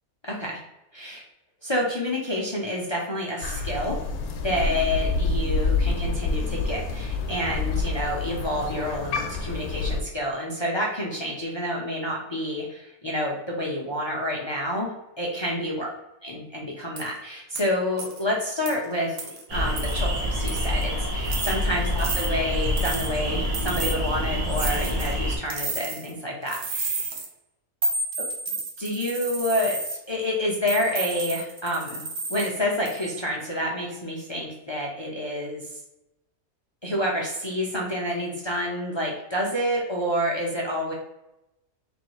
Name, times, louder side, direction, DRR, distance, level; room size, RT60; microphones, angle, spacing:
voice 1, 0.2-0.6 0.9-1.2 1.6-4.0 4.4-14.9 15.2-15.9 16.2-19.2 19.5-27.1 28.8-29.8 30.1-32.0 32.3-35.8 36.8-40.9, left 1 dB, 40° left, -3 dB, 0.4 m, -28 dB
Crow, 3.4-10.0, left 3 dB, 80° left, 1.1 m, -27 dB
sound 1, 17.0-17.1 17.6-17.7 18.0-18.2 18.7-18.8 19.2-19.4 19.8-20.0 20.5-20.8 21.2-21.6 22.0-22.3 22.8-23.1 23.5-24.0 24.5-25.1 25.5-26.1 26.5-27.3 27.8-30.0 30.7-32.5 32.9-33.2, right 3 dB, 50° right, 0.8 m, -31 dB
sound 2, 19.5-25.4, equal, 80° right, 1.5 m, -27 dB
3.9 x 3.1 x 3.1 m, 0.91 s
omnidirectional pair, 1.5 m